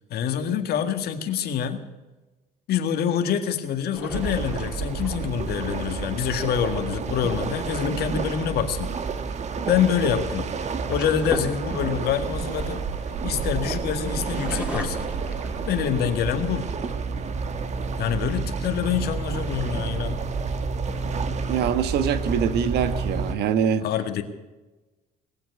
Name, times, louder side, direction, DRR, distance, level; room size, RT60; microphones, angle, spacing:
voice 1, 0.1-1.8 2.7-8.9 9.7-10.5 10.9-12.8 13.2-15.1 15.7-16.7 18.0-20.2 23.8-24.2, left 8 dB, 70° left, 7 dB, 1.9 m, -26 dB
sound 1, 3.9-5.5 8.5-8.8 9.8-13.5 14.0-16.2 16.7-16.8 17.1-17.7, equal, 5° right, 2.9 m, -37 dB
sound 2, 4.1-23.4, right 4 dB, 40° right, 1.3 m, -30 dB
voice 2, 21.5-23.8, right 7 dB, 75° right, 11 dB, 1.3 m, -24 dB
20.0 x 7.7 x 9.5 m, 1.1 s
cardioid pair, 110°, 17 cm